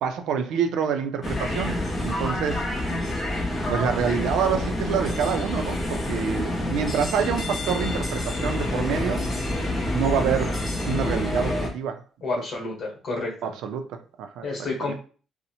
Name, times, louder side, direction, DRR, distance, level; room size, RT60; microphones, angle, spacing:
voice 1, 0.0-2.8 3.7-9.2 9.9-10.6 10.8-12.0 12.4-12.5 13.4-14.5 14.9-15.0, right 7 dB, 85° right, 7 dB, 0.3 m, -27 dB
sound 1, 1.2-11.7, left 1 dB, 20° left, 0.6 m, -27 dB
voice 2, 12.2-13.5 14.4-15.0, left 3 dB, 45° left, 0 dB, 1.0 m, -30 dB
2.6 x 2.0 x 2.8 m, 0.38 s
cardioid pair, 150°, 0 cm